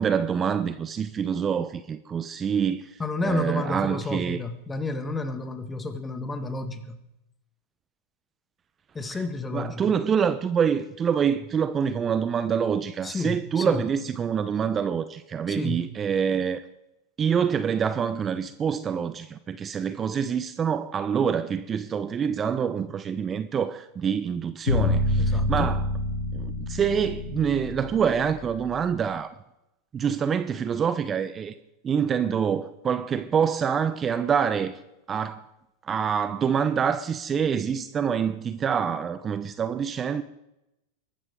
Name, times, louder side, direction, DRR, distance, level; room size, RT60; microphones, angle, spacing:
voice 1, 0.0-4.4 9.1-9.2 9.5-16.6 17.2-25.8 26.3-29.3 29.9-31.5 31.8-34.8 35.1-35.4 35.9-40.2, right 7 dB, 30° right, 0.8 m, -26 dB
voice 2, 3.0-7.0 8.9-9.9 13.0-13.9 15.5-15.8 25.2-25.7, left 3 dB, 15° left, 2.0 m, -31 dB
sound 1, 24.7-28.8, left 2 dB, 80° left, 2.4 m, -26 dB
22.5 x 12.0 x 3.8 m
hypercardioid pair, 95°, 0 cm